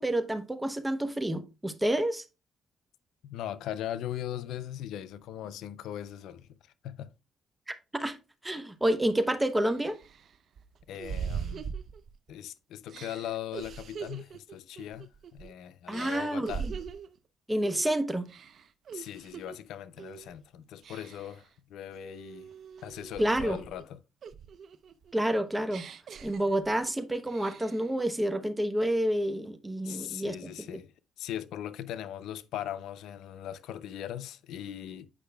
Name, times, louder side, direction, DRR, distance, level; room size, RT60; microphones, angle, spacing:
voice 1, 0.0-2.2 7.7-8.2 8.4-10.0 15.9-16.7 17.5-18.3 23.2-23.6 25.1-25.8 26.2-30.7, right 1 dB, 10° right, 0.8 m, -29 dB
voice 2, 3.2-6.5 6.8-7.1 10.9-11.7 12.3-16.6 18.9-22.5 22.8-24.0 29.8-30.9 31.2-35.1, left 11 dB, 85° left, 0.4 m, -39 dB
sound 1, 9.0-9.1 9.7-12.4 12.9-15.5 15.9-17.2 17.6-17.9 18.3-19.6 20.0-20.3 20.8-21.4 21.9-23.8 24.2-26.9 27.3-27.9, right 6 dB, 60° right, 0.5 m, -41 dB
8.3 x 5.5 x 2.2 m
cardioid pair, 90°, 0 cm